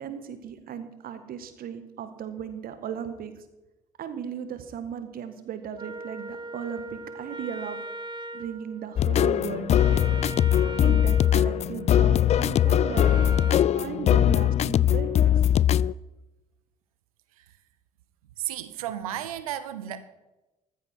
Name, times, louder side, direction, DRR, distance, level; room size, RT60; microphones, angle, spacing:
voice 1, 0.0-3.4 4.0-7.8 8.3-10.2 10.8-15.3, right 8 dB, 55° right, 10 dB, 1.6 m, -37 dB
Wind instrument woodwind instrument, 5.7-13.7, right 2 dB, 25° right, 1.0 m, -38 dB
sound 1, 9.0-15.9, left 10 dB, 40° left, 0.4 m, -21 dB
voice 2, 18.4-20.1, right 11 dB, 80° right, 13 dB, 0.7 m, -33 dB
14.5 x 13.5 x 4.5 m, 1.0 s
figure-of-eight pair, 45°, 18 cm